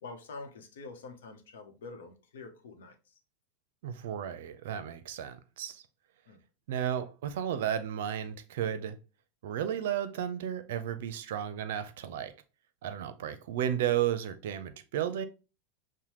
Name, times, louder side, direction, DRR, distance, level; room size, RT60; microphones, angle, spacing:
voice 1, 0.0-3.1 6.3-6.4, left 3 dB, 75° left, 0.8 m, -46 dB
voice 2, 3.8-5.8 6.7-9.0 9.4-12.3 12.8-15.2, right 10 dB, 70° right, 0.5 m, -33 dB
5.5 x 2.1 x 3.0 m
hypercardioid pair, 100°, 0 cm